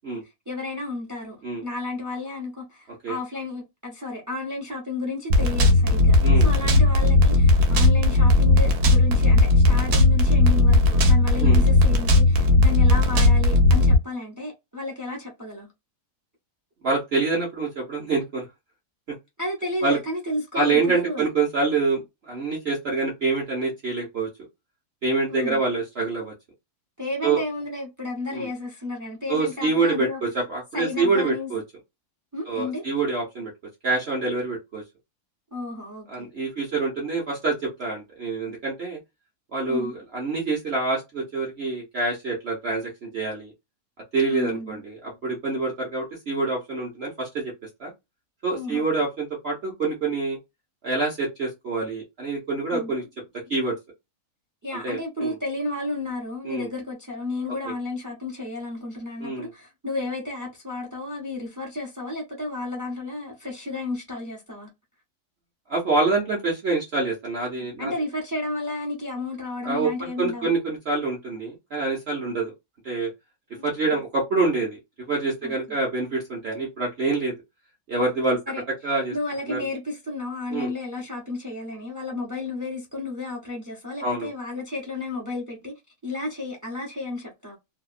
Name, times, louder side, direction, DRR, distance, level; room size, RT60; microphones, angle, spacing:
voice 1, 0.5-15.7 19.4-21.2 25.3-25.6 27.0-30.2 30.7-31.5 32.3-32.8 35.5-36.3 39.7-39.9 44.3-44.8 48.5-48.9 52.7-52.9 54.6-64.7 67.6-70.5 73.5-73.7 75.4-75.5 78.5-78.6 79.1-85.7 86.0-87.6, left 2 dB, 30° right, 0.3 m, -32 dB
sound 1, 5.3-14.0, left 2 dB, 75° right, 1.1 m, -17 dB
voice 2, 16.8-18.4 19.8-20.0 20.5-24.3 25.0-26.3 27.2-27.4 28.3-28.5 29.3-31.6 32.5-33.5 33.8-34.8 36.1-39.0 39.5-43.5 44.1-47.5 47.8-47.9 48.4-50.4 50.8-53.0 53.5-53.7 54.8-55.3 56.4-56.7 57.6-57.7 59.2-59.5 65.7-67.9 69.6-72.5 72.8-73.1 73.6-74.8 75.1-77.3 77.9-78.4 78.8-79.1 79.5-79.6 80.5-80.7 84.0-84.3, right 3 dB, 50° right, 0.8 m, -26 dB
2.8 x 2.2 x 2.4 m
omnidirectional pair, 1.7 m